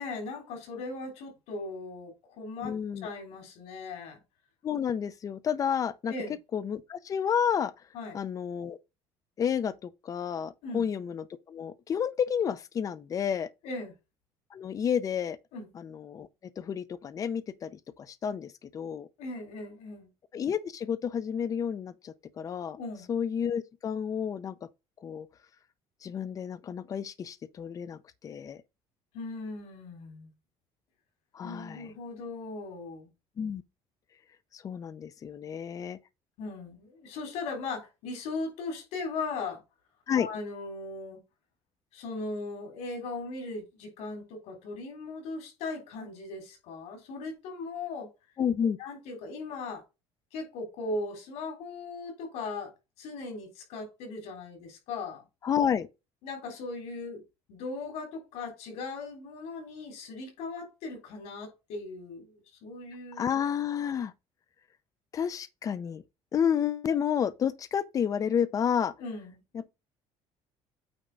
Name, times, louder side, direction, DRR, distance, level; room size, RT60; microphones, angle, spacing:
voice 1, 0.0-2.7 3.0-4.2 6.1-6.3 7.9-8.2 10.6-10.9 13.6-13.9 15.5-15.7 19.2-20.1 22.8-23.1 29.1-30.3 31.4-33.1 36.4-39.6 40.1-41.2 41.9-48.1 48.8-49.8 50.3-52.7 53.0-55.2 56.2-57.2 57.5-63.3 69.0-69.4, left 3 dB, 80° left, 3.6 m, -38 dB
voice 2, 2.6-3.1 4.6-6.1 6.5-7.7 8.1-8.8 9.4-13.5 14.5-15.4 15.7-16.3 16.6-19.1 20.3-22.8 23.1-24.5 25.0-25.3 26.0-28.6 31.3-31.9 33.4-33.6 34.5-36.0 40.1-40.3 48.4-48.8 55.4-55.9 63.2-64.1 65.1-66.0 66.3-68.9 69.5-69.7, left 8 dB, 30° left, 0.6 m, -30 dB
8.8 x 3.6 x 5.2 m
cardioid pair, 150°, 11 cm